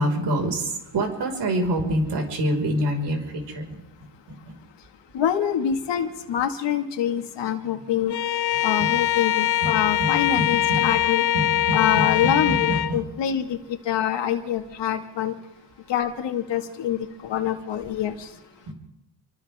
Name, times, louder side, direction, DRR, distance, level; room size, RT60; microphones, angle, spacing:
voice 1, 0.0-4.6 8.8-8.9 9.6-10.9 11.3-13.0 18.7-18.8, right 1 dB, 70° right, 2 dB, 5.7 m, -27 dB
voice 2, 5.1-8.2 8.6-11.2 11.7-13.6 13.8-15.3 15.9-18.3, left 9 dB, 80° left, 5 dB, 2.3 m, -25 dB
Bowed string instrument, 8.1-13.0, left 12 dB, 65° left, 0.8 m, -23 dB
28.5 x 25.0 x 3.7 m, 0.92 s
cardioid pair, 95°, 42 cm